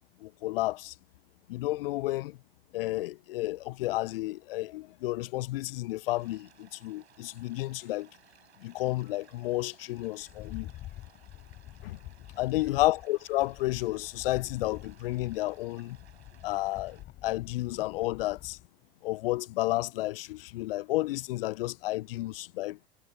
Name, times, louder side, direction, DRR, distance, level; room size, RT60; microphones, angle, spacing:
voice 1, 0.2-0.9 1.5-2.4 2.7-8.1 8.6-10.7 11.8-12.0 12.4-16.0 16.4-18.6 19.0-22.8, left 18 dB, 55° left, 0.7 m, -31 dB
sound 1, 6.0-17.0, right 8 dB, 70° right, 7.1 m, -61 dB
Rattle, 10.2-18.7, left 14 dB, 35° left, 3.6 m, -47 dB
figure-of-eight pair, 85°, 33 cm